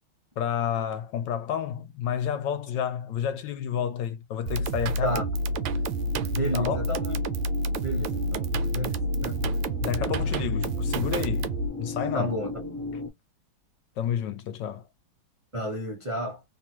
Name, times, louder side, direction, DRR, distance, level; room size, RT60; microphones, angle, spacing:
voice 1, 0.4-5.2 6.5-6.8 9.8-11.5 11.8-12.3 14.0-14.9, left 9 dB, 75° left, 1.1 m, -30 dB
sound 1, 4.5-11.7, right 1 dB, 75° right, 1.3 m, -28 dB
sound 2, 5.2-13.1, left 1 dB, 40° left, 1.1 m, -37 dB
voice 2, 6.3-7.2 7.8-9.6 12.1-12.6 15.5-16.4, right 1 dB, 50° right, 0.4 m, -32 dB
3.4 x 2.2 x 2.8 m
omnidirectional pair, 2.2 m